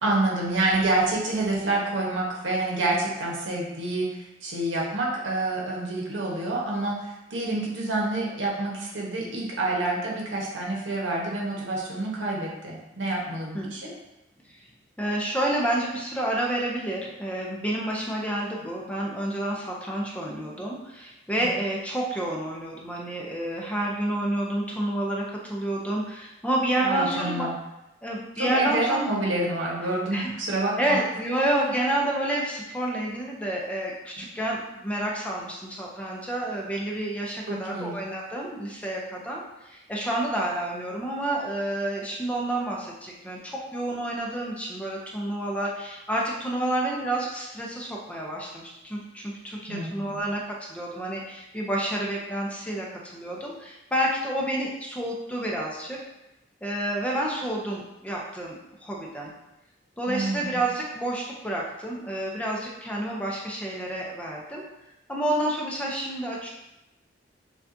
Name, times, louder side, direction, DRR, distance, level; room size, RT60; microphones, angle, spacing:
voice 1, 0.0-13.9 26.8-27.6 28.4-31.0 37.5-37.9 49.7-50.2 60.1-60.6, right 2 dB, 85° right, -3 dB, 1.1 m, -28 dB
voice 2, 15.0-27.5 28.0-29.1 30.1-30.3 30.8-56.0 56.6-58.6 58.8-59.3 60.0-64.6 65.1-66.5, right 1 dB, 5° left, -3 dB, 0.5 m, -29 dB
6.7 x 2.3 x 2.7 m, 0.93 s
head